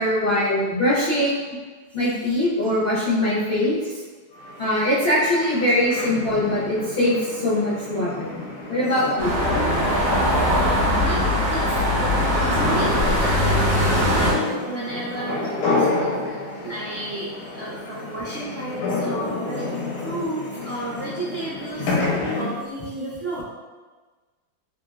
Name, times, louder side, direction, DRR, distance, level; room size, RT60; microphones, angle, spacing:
voice 1, 0.0-1.5 1.9-4.0 4.6-8.4 8.7-9.4, left 1 dB, 45° left, -12 dB, 0.8 m, -22 dB
sound 1, 4.4-22.5, left 3 dB, 85° left, 1.4 m, -30 dB
sound 2, 9.2-14.3, equal, 45° right, 0.8 m, -21 dB
voice 2, 9.8-23.4, right 1 dB, 75° right, -9 dB, 0.6 m, -33 dB
3.1 x 3.0 x 2.3 m, 1.3 s
omnidirectional pair, 2.2 m